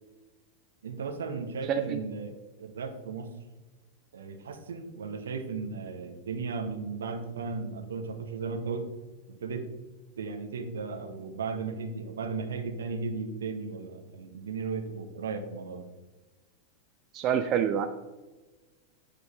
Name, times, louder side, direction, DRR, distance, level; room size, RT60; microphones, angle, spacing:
voice 1, 0.8-3.3 4.1-8.9 9.3-9.7 10.2-15.9, right 4 dB, 65° right, 8 dB, 0.9 m, -35 dB
voice 2, 1.7-2.0 17.1-17.9, right 8 dB, 35° right, 8 dB, 0.4 m, -27 dB
7.9 x 6.8 x 3.2 m, 1.2 s
figure-of-eight pair, 90°, 0 cm